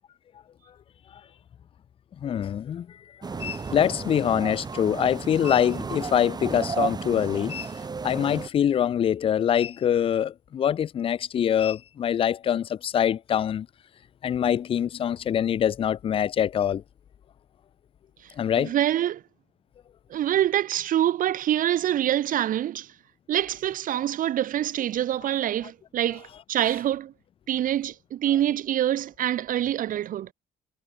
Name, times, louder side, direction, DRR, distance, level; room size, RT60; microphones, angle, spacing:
voice 1, 2.2-3.0 3.3-7.7 8.0-13.7 14.2-16.8 18.4-18.7, left 9 dB, 35° left, 0.4 m, -24 dB
sound 1, 3.2-8.5, right 4 dB, 25° right, 1.3 m, -33 dB
voice 2, 18.6-19.2 20.1-22.9 23.3-27.1 27.5-30.3, right 11 dB, 55° right, 0.8 m, -25 dB
cardioid pair, 110°, 17 cm